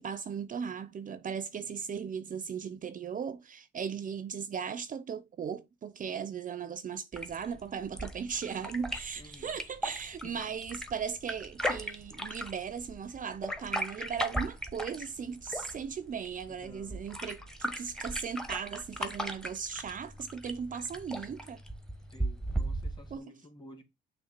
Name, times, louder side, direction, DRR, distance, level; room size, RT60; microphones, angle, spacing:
voice 1, 0.0-21.6 23.1-23.2, right 6 dB, 40° right, 0.6 m, -37 dB
sound 1, 7.1-23.2, right 1 dB, 5° left, 1.0 m, -38 dB
voice 2, 9.1-9.6 10.2-10.4 16.5-17.0 22.1-23.8, left 1 dB, 20° left, 2.3 m, -52 dB
6.4 x 3.1 x 5.9 m
cardioid pair, 90°, 20 cm